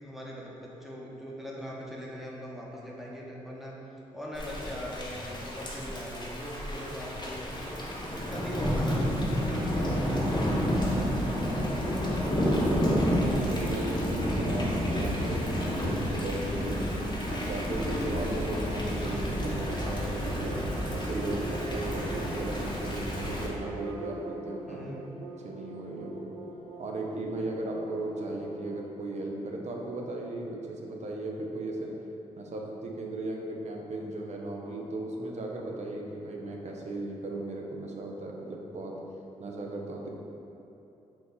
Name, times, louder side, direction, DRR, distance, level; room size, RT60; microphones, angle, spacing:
voice 1, 0.0-3.7 4.1-7.7 8.1-11.6 24.7-25.1, equal, ahead, -4 dB, 0.9 m, -41 dB
Thunder / Rain, 4.3-23.5, equal, 30° left, 0.9 m, -30 dB
sound 1, 5.0-5.4 5.7-6.0 6.8-7.3 7.6-7.9 8.6-9.1 9.5-9.8 10.5-10.9 11.3-11.7, left 1 dB, 75° left, 1.2 m, -53 dB
voice 2, 12.2-16.9 17.3-20.6 20.9-24.8 25.4-26.3 26.8-31.9 32.4-38.9 39.4-40.1, right 2 dB, 50° right, 0 dB, 0.7 m, -36 dB
sound 2, 19.1-28.8, right 2 dB, 85° right, 0.4 m, -43 dB
4.4 x 2.6 x 3.9 m, 2.9 s
supercardioid pair, 55°, 14 cm